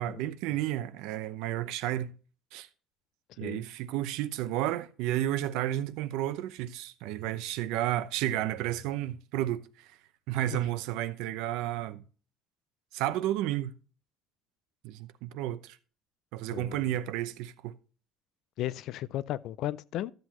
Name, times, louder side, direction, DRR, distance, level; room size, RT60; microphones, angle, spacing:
voice 1, 0.0-2.1 2.5-2.7 3.4-9.9 10.3-12.0 12.9-13.7 14.8-15.8 16.3-17.7, right 13 dB, 80° right, 0.7 m, -32 dB
voice 2, 3.3-3.6 10.5-10.7 16.5-17.0 18.6-20.1, left 13 dB, 55° left, 0.4 m, -35 dB
13.0 x 7.8 x 3.0 m
cardioid pair, 180°, 0 cm